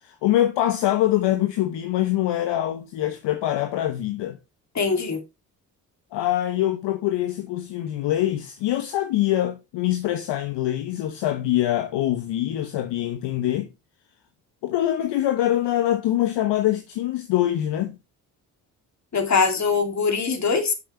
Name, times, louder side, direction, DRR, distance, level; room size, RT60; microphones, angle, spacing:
voice 1, 0.0-4.4 6.1-13.7 14.6-18.0, left 13 dB, 60° left, 1.2 m, -24 dB
voice 2, 4.7-5.2 19.1-20.7, left 5 dB, 35° left, 2.9 m, -22 dB
8.9 x 6.8 x 3.3 m
hypercardioid pair, 50°, 47 cm